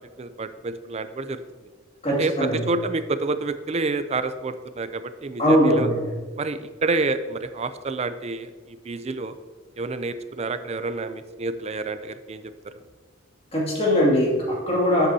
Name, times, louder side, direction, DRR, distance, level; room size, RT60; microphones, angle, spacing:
voice 1, 0.2-1.4 2.2-5.9 6.4-9.4 9.8-12.4, right 3 dB, 35° right, 11 dB, 0.4 m, -28 dB
voice 2, 2.0-2.6 5.4-6.0 13.5-15.1, equal, 30° left, -3 dB, 2.4 m, -20 dB
11.5 x 8.0 x 2.8 m, 1.4 s
head